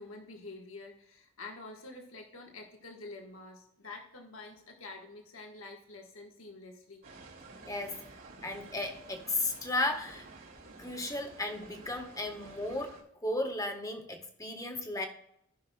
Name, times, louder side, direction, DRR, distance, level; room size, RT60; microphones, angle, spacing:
voice 1, 0.0-7.0, left 3 dB, 75° left, 1 dB, 1.6 m, -47 dB
sound 1, 7.0-13.0, right 3 dB, 65° right, 2.5 m, -51 dB
voice 2, 7.6-8.0 8.4-10.3 10.8-15.1, left 2 dB, 15° left, 4 dB, 1.3 m, -35 dB
16.5 x 5.8 x 2.3 m, 0.75 s
head